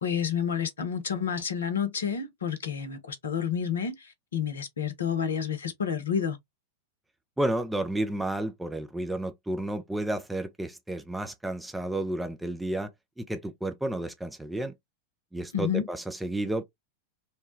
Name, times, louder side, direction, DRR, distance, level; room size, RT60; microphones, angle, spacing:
voice 1, 0.0-6.4 15.5-15.9, left 8 dB, 70° left, 0.7 m, -30 dB
voice 2, 7.4-12.9 13.2-14.7 15.3-16.6, right 1 dB, 5° right, 0.5 m, -31 dB
3.1 x 2.2 x 3.0 m
figure-of-eight pair, 90°, 0 cm